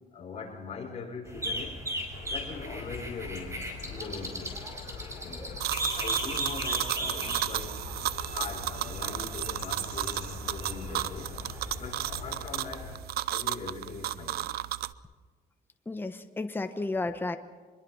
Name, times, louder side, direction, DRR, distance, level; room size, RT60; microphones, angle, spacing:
voice 1, 0.1-1.8 2.2-4.5 5.2-5.5 5.9-7.8 8.2-11.4 11.8-12.9 13.3-14.5, left 5 dB, 40° left, 1 dB, 5.8 m, -41 dB
sound 1, 1.3-12.9, right 1 dB, 15° right, 5.7 m, -38 dB
sound 2, 2.1-12.9, left 9 dB, 75° left, 3.6 m, -45 dB
sound 3, 5.6-14.9, right 14 dB, 65° right, 0.6 m, -34 dB
voice 2, 15.9-17.4, left 2 dB, 10° left, 8 dB, 1.2 m, -32 dB
24.5 x 22.0 x 5.7 m, 1.5 s
cardioid pair, 110°, 17 cm